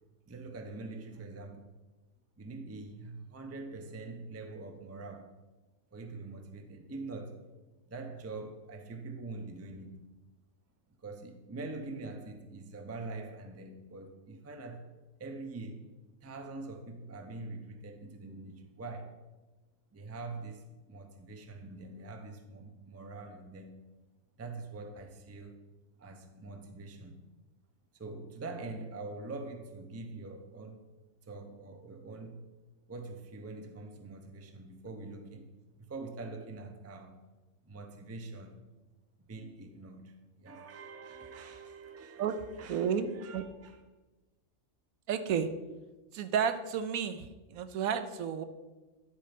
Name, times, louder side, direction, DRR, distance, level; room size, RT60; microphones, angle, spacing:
voice 1, 0.3-1.7 2.4-5.4 5.9-7.5 7.9-10.0 11.0-14.9 15.2-15.9 16.2-19.2 19.9-23.8 24.4-25.7 26.0-27.3 27.9-30.9 31.2-32.4 32.9-35.5 35.8-37.2 37.6-38.6 39.2-43.8, right 3 dB, 20° right, 0.4 m, -44 dB
voice 2, 42.2-43.4 45.1-45.5 46.1-48.4, right 7 dB, 80° right, 1.0 m, -32 dB
10.0 x 4.3 x 5.1 m
omnidirectional pair, 1.5 m